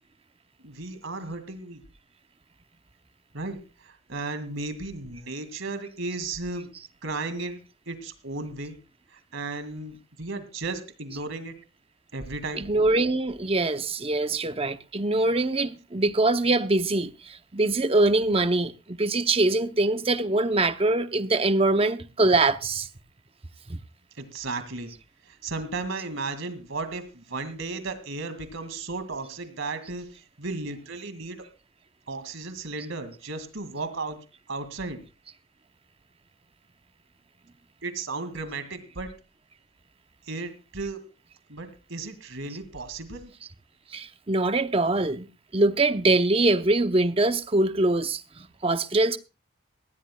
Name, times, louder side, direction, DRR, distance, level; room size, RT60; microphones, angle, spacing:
voice 1, 0.6-1.8 3.3-6.7 7.0-7.6 7.9-8.8 9.1-11.5 12.1-12.7 24.2-24.9 25.3-31.5 32.1-35.0 37.8-39.1 40.3-41.0 41.5-43.3, right 3 dB, 75° right, 2.1 m, -35 dB
voice 2, 12.5-22.9 23.7-23.8 43.9-45.3 45.5-49.2, right 2 dB, 30° right, 0.7 m, -23 dB
19.5 x 15.5 x 2.2 m
head